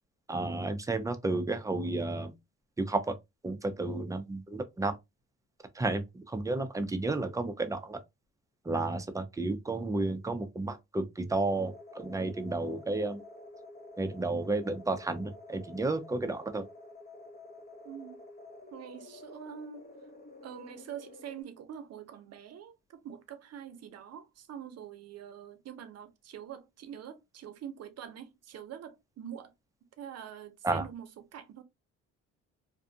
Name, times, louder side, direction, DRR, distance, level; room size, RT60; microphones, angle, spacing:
voice 1, 0.3-2.3 2.8-3.1 3.4-4.9 5.7-8.0 8.6-13.2 14.0-16.6 30.6-30.8, right 2 dB, 10° right, 0.5 m, -32 dB
sound 1, 11.4-21.4, left 2 dB, 35° left, 0.8 m, -50 dB
voice 2, 17.8-18.2 18.7-19.9 20.4-29.5 30.0-31.6, right 9 dB, 55° right, 0.7 m, -45 dB
2.6 x 2.3 x 2.6 m
cardioid pair, 90°, 30 cm